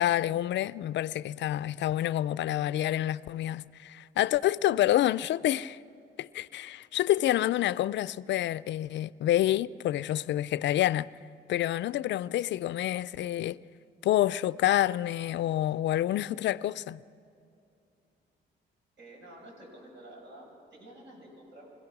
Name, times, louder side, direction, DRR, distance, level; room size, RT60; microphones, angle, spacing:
voice 1, 0.0-5.8 6.2-11.1 11.5-13.6 14.0-17.0, left 13 dB, 65° left, 0.4 m, -28 dB
voice 2, 19.0-21.7, right 1 dB, 65° right, 6.5 m, -50 dB
26.5 x 16.5 x 6.0 m
cardioid pair, 90°, 20 cm